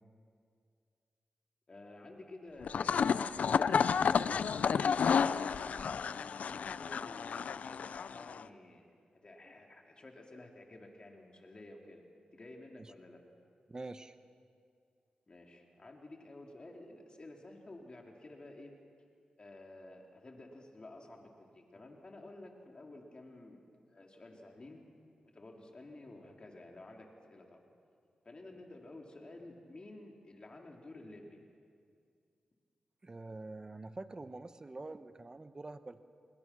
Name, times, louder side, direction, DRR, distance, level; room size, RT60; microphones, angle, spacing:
voice 1, 1.7-8.9 9.2-12.0 12.3-13.2 15.3-18.7 19.4-23.6 23.9-24.8 25.2-27.7 28.2-31.4, left 2 dB, 40° left, 1 dB, 3.7 m, -52 dB
sound 1, 2.6-8.4, left 6 dB, 75° left, 0.5 m, -31 dB
voice 2, 13.7-14.1 33.0-36.0, right 2 dB, 30° right, 11 dB, 1.0 m, -45 dB
28.5 x 21.5 x 6.2 m, 2.3 s
cardioid pair, 75°, 3 cm